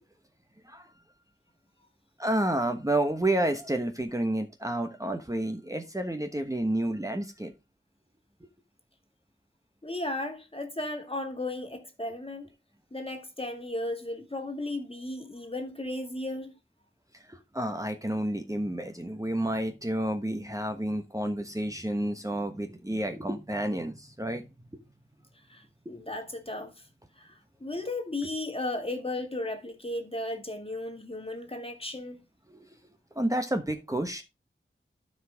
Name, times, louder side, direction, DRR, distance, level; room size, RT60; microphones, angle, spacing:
voice 1, 2.2-7.5 17.1-24.5 32.5-32.6 33.1-34.2, right 1 dB, 15° right, 1.2 m, -30 dB
voice 2, 9.8-12.5 12.9-16.5 25.3-26.9 27.1-32.2, left 2 dB, 25° left, 1.9 m, -35 dB
12.5 x 5.0 x 3.5 m
wide cardioid pair, 50°, 21 cm